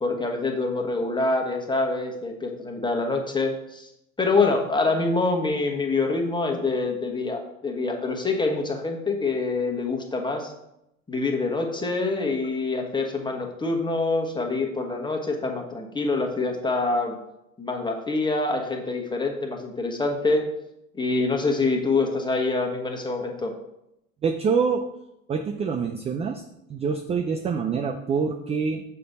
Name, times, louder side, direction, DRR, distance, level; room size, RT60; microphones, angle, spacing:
voice 1, 0.0-3.9 4.2-10.5 11.1-17.2 17.6-20.4 20.9-23.5, left 3 dB, 10° left, 2 dB, 1.3 m, -25 dB
voice 2, 24.2-24.8 25.3-26.4 26.7-28.8, right 5 dB, 15° right, 6 dB, 0.4 m, -25 dB
6.7 x 5.0 x 4.1 m, 0.84 s
figure-of-eight pair, 70°, 40 cm